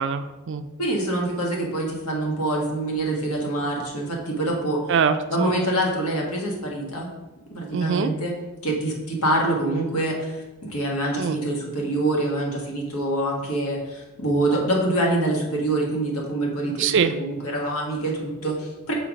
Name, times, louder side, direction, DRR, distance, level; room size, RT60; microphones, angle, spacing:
voice 1, 0.0-0.7 4.9-5.6 7.7-8.1 11.2-11.4 16.6-17.1, right 6 dB, 55° right, 10 dB, 0.4 m, -23 dB
voice 2, 0.8-4.8 5.3-7.1 7.5-8.3 8.6-18.9, right 1 dB, 80° left, -1 dB, 1.6 m, -25 dB
5.8 x 4.4 x 5.1 m, 1.1 s
head